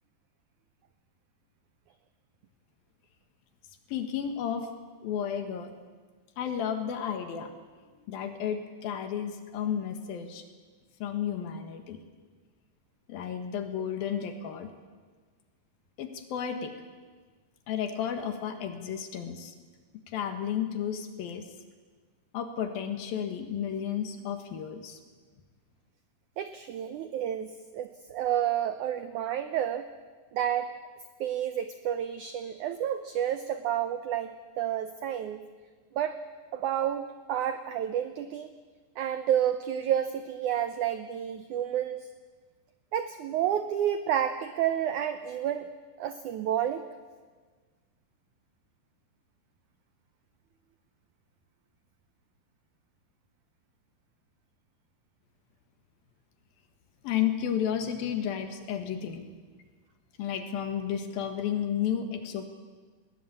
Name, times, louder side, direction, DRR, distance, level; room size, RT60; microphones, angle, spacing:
voice 1, 3.9-4.7 5.0-5.7 6.4-7.5 8.1-10.4 11.0-12.0 13.1-14.7 16.0-16.7 17.7-19.5 20.1-21.5 22.3-25.0 57.0-59.3 60.2-62.5, left 9 dB, 70° left, 7 dB, 3.3 m, -32 dB
voice 2, 26.4-29.9 30.3-30.7 31.2-35.5 35.9-36.2 36.5-38.5 39.0-42.1 42.9-45.7 46.0-46.8, right 10 dB, 90° right, 10 dB, 1.7 m, -30 dB
20.5 x 19.5 x 8.6 m, 1.5 s
omnidirectional pair, 4.6 m